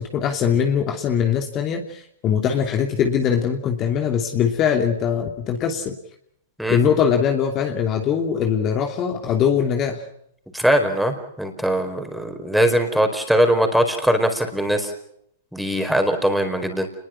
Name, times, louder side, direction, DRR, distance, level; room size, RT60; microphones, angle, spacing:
voice 1, 0.0-5.9 6.7-10.0, left 7 dB, 30° left, 3 dB, 2.9 m, -21 dB
voice 2, 10.5-14.9 15.5-16.9, equal, ahead, 5 dB, 4.8 m, -21 dB
28.5 x 21.5 x 6.0 m, 0.72 s
hypercardioid pair, 120°, 0 cm